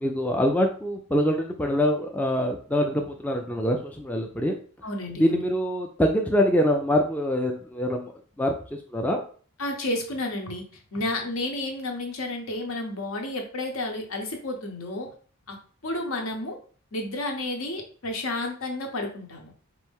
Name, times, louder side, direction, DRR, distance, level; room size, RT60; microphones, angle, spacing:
voice 1, 0.0-4.6 5.2-8.1 8.4-8.5 8.9-9.2, equal, 5° left, 1 dB, 0.3 m, -24 dB
voice 2, 4.8-5.4 9.6-10.6 10.9-15.1 15.5-15.6 15.8-16.6 16.9-19.5, left 2 dB, 70° left, 3 dB, 0.9 m, -31 dB
4.2 x 2.6 x 3.5 m, 0.42 s
head